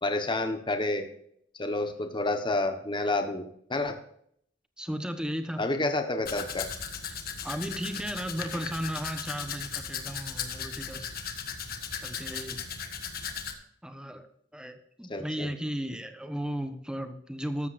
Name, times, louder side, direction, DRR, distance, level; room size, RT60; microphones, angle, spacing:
voice 1, 0.0-1.0 1.6-3.4 3.7-4.0 5.6-6.7 15.1-15.5, left 2 dB, 25° left, 6 dB, 1.3 m, -29 dB
voice 2, 4.8-5.6 7.1-7.2 7.4-11.3 12.0-12.7 13.8-14.3 14.5-17.7, equal, 5° right, 8 dB, 1.1 m, -35 dB
Domestic sounds home sounds, 6.2-13.5, left 6 dB, 55° left, 1.5 m, -37 dB
14.0 x 12.5 x 2.6 m, 0.68 s
head